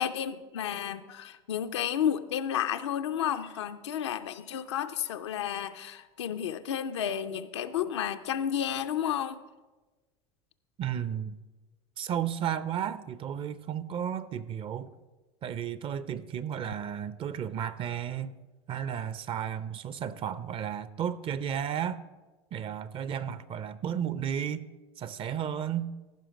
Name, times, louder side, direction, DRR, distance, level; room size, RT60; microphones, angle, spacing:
voice 1, 0.0-9.4, left 9 dB, 90° left, 8 dB, 0.5 m, -32 dB
voice 2, 10.8-11.4 12.0-14.9 15.4-18.4 18.7-22.0 22.5-24.7 25.0-25.9, right 9 dB, 40° right, 16 dB, 0.6 m, -33 dB
14.5 x 5.7 x 5.0 m, 1.2 s
hypercardioid pair, 90°, 14 cm